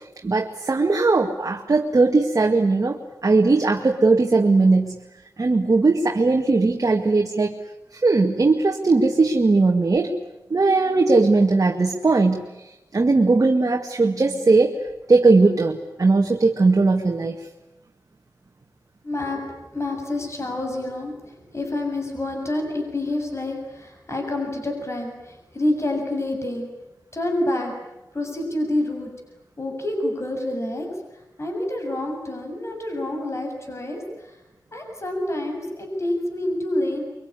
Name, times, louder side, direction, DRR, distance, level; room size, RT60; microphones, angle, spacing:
voice 1, 0.2-5.0 5.4-7.5 8.0-10.1 10.5-12.4 12.9-14.8 15.1-17.4, right 3 dB, 50° right, 1 dB, 2.1 m, -19 dB
voice 2, 19.0-26.7 27.1-27.7 28.1-29.1 29.6-30.9 31.4-34.3 34.7-37.0, left 1 dB, 40° left, 3 dB, 7.0 m, -27 dB
24.5 x 24.0 x 10.0 m, 0.95 s
wide cardioid pair, 80°, 7 cm